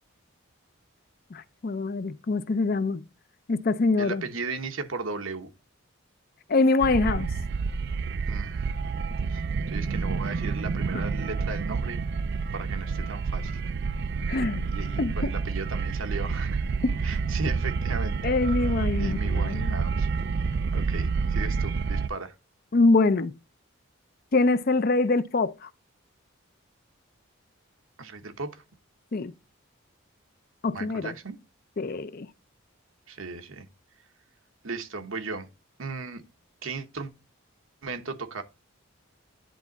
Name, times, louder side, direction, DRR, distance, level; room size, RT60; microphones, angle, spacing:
voice 1, 1.3-3.0 3.5-4.2 6.5-7.3 14.3-14.6 15.0-15.3 16.8-16.9 18.2-19.8 22.7-23.3 24.3-25.7 29.1-29.3 30.6-31.1 31.8-32.3, left 3 dB, 45° left, 0.5 m, -24 dB
voice 2, 4.0-5.5 8.3-8.7 9.3-12.0 12.5-13.6 14.6-16.6 17.0-18.2 19.0-20.1 20.7-22.3 28.0-28.6 30.7-31.4 33.1-33.7 34.6-35.5 35.8-36.2 36.6-37.1 37.8-38.4, right 4 dB, 70° right, 1.0 m, -36 dB
sound 1, 6.8-22.1, right 4 dB, 50° right, 0.4 m, -28 dB
10.0 x 3.4 x 4.0 m
head